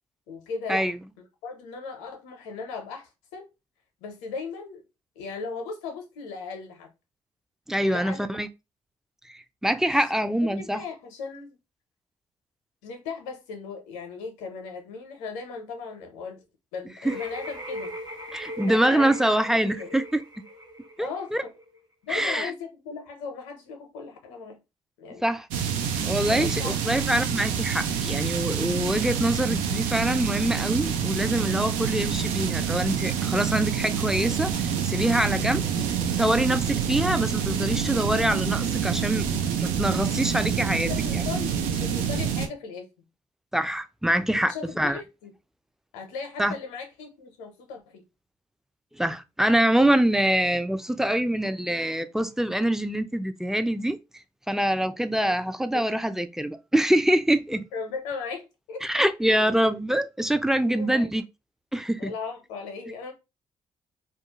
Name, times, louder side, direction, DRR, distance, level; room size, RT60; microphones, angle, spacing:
voice 1, 0.3-0.9 1.4-3.5 4.0-4.8 5.2-6.9 7.8-8.4 10.5-11.6 12.8-16.4 16.7-18.0 18.6-19.2 19.5-19.9 21.0-21.5 22.0-24.6 25.0-25.3 26.3-26.8 40.9-43.1 44.4-45.3 45.9-48.0 55.1-55.4 55.7-55.8 57.7-58.9 59.2-59.6 60.5-61.1 62.0-63.1, left 5 dB, 85° left, 0.6 m, -37 dB
voice 2, 7.7-8.5 9.3-10.8 17.0-17.1 18.3-20.2 21.0-21.4 22.1-22.5 25.2-25.5 26.0-35.6 36.1-39.3 39.6-41.2 43.5-45.0 46.4-46.5 48.9-54.0 54.5-57.6 58.8-61.2 61.7-62.1, right 1 dB, 5° right, 0.4 m, -25 dB
sound 1, 17.1-21.8, equal, 35° right, 1.2 m, -39 dB
sound 2, 25.5-42.5, right 8 dB, 80° right, 0.4 m, -27 dB
2.3 x 2.2 x 2.8 m
hypercardioid pair, 45°, 13 cm